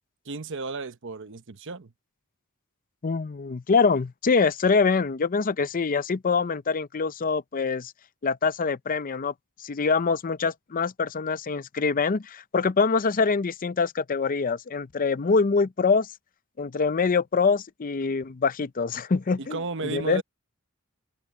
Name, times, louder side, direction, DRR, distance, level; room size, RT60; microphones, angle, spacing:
voice 1, 0.2-1.9 19.4-20.2, right 3 dB, 60° right, 0.9 m, -34 dB
voice 2, 3.0-7.9 8.2-9.3 9.6-16.1 16.6-20.2, left 4 dB, 40° left, 0.5 m, -24 dB
head